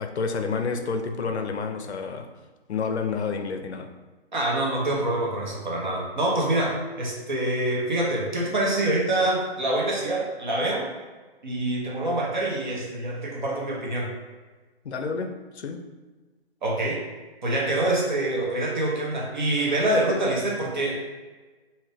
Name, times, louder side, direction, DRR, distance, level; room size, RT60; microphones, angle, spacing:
voice 1, 0.0-2.3 2.7-3.9 14.8-15.8, left 5 dB, 80° left, 6 dB, 0.7 m, -29 dB
voice 2, 4.3-10.8 11.4-14.1 16.6-17.0 17.4-21.0, right 1 dB, 45° right, -2 dB, 1.1 m, -25 dB
5.6 x 2.8 x 3.4 m, 1.3 s
hypercardioid pair, 175°, 33 cm